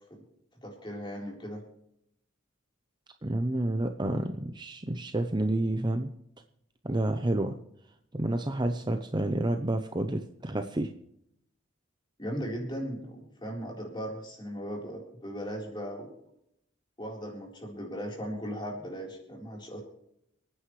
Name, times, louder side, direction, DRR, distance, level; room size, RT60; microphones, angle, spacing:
voice 1, 0.6-1.6 12.2-16.1 17.0-19.8, equal, 25° left, -1 dB, 4.1 m, -37 dB
voice 2, 3.2-6.1 6.8-7.6 8.1-10.9, right 1 dB, 20° right, 7 dB, 0.7 m, -29 dB
28.5 x 9.5 x 3.2 m, 0.74 s
head